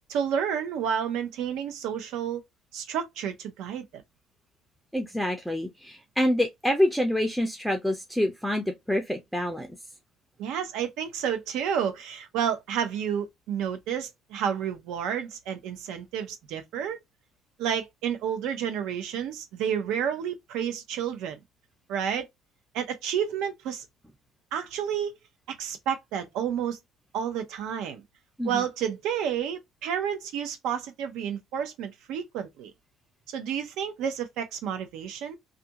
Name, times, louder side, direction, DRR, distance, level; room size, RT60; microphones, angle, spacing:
voice 1, 0.1-2.4 2.7-4.0 10.4-17.0 17.6-21.4 21.9-22.3 22.7-23.8 24.5-25.2 25.5-26.8 27.1-28.0 28.4-32.7 33.3-35.4, right 8 dB, 85° right, 0.7 m, -30 dB
voice 2, 4.9-9.7 28.4-28.6, left 1 dB, ahead, 0.5 m, -27 dB
2.4 x 2.3 x 2.8 m
cardioid pair, 145°, 0 cm